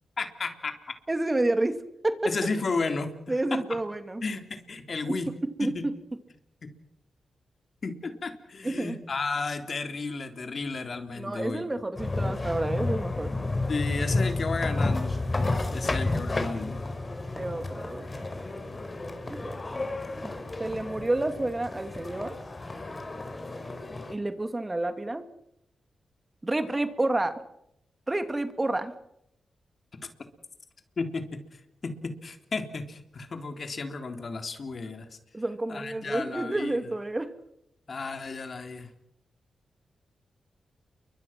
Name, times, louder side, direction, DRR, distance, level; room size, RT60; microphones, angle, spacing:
voice 1, 0.2-0.7 2.2-3.8 4.2-5.3 5.6-5.8 6.6-6.7 7.8-11.6 13.7-15.2 15.7-16.8 31.0-35.1 35.7-36.9 37.9-38.9, left 4 dB, 55° left, 6 dB, 3.6 m, -33 dB
voice 2, 1.1-1.8 2.0-2.3 3.3-4.2 5.1-5.9 8.6-9.0 11.2-13.3 15.7-16.0 17.4-18.3 19.3-19.6 20.6-22.4 24.1-25.2 26.4-27.3 28.1-28.9 35.3-37.3, right 2 dB, 25° right, 9 dB, 2.5 m, -29 dB
sound 1, 12.0-24.1, left 2 dB, 35° left, 4.2 m, -31 dB
30.0 x 23.5 x 6.1 m, 0.80 s
cardioid pair, 55°, 0 cm